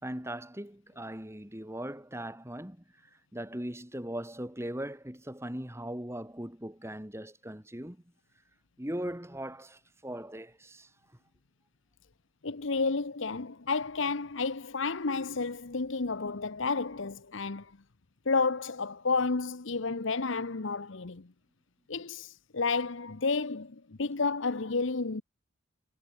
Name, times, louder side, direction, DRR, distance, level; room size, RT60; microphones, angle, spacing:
voice 1, 0.0-2.8 3.3-8.0 8.8-10.9, right 1 dB, 10° right, 2.8 m, -39 dB
voice 2, 12.4-17.7 18.3-21.3 21.9-25.2, left 4 dB, 65° left, 1.0 m, -31 dB
head